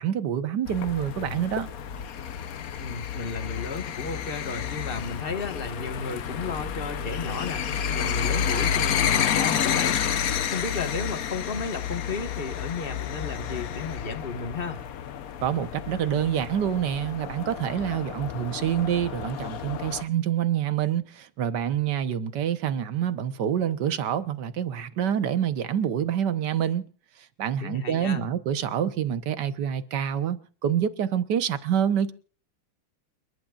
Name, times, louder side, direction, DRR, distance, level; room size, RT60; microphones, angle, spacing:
voice 1, 0.0-1.7 15.4-26.9 27.2-32.1, right 9 dB, 60° right, 1.4 m, -27 dB
sound 1, 0.7-20.0, left 8 dB, 60° left, 0.9 m, -30 dB
voice 2, 2.8-7.6 7.9-10.0 10.5-14.8 27.6-28.2, left 4 dB, 30° left, 1.4 m, -33 dB
29.5 x 11.5 x 2.5 m
omnidirectional pair, 2.4 m